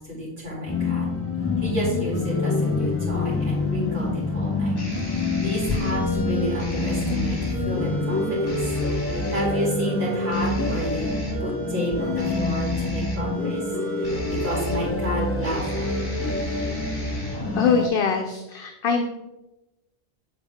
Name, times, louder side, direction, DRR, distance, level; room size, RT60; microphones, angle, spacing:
voice 1, 0.1-1.0 1.6-4.8 5.1-8.7 9.3-11.1 11.4-13.6 14.0-16.0, equal, 70° right, -7 dB, 2.7 m, -30 dB
sound 1, 0.7-17.9, left 3 dB, 20° left, 0.4 m, -27 dB
sound 2, 3.2-17.7, equal, 45° left, 1.7 m, -33 dB
voice 2, 17.5-19.0, left 6 dB, 65° left, 5 dB, 0.7 m, -23 dB
7.2 x 4.0 x 3.5 m, 0.98 s
omnidirectional pair, 1.1 m